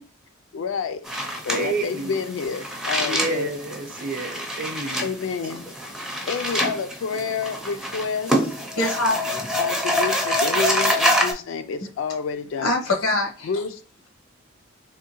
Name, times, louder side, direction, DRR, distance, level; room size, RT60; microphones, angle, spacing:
voice 1, 0.5-1.0 1.5-3.5 5.0-5.7 6.3-8.6 9.6-12.7 13.4-13.8, left 5 dB, 70° left, 0.3 m, -29 dB
sound 1, 1.0-11.3, equal, 5° right, 0.4 m, -26 dB
voice 2, 1.5-2.2 3.0-5.1, right 3 dB, 45° right, 0.6 m, -29 dB
voice 3, 8.8-9.4 12.6-13.5, left 2 dB, 90° left, 0.9 m, -24 dB
3.5 x 2.8 x 2.9 m
head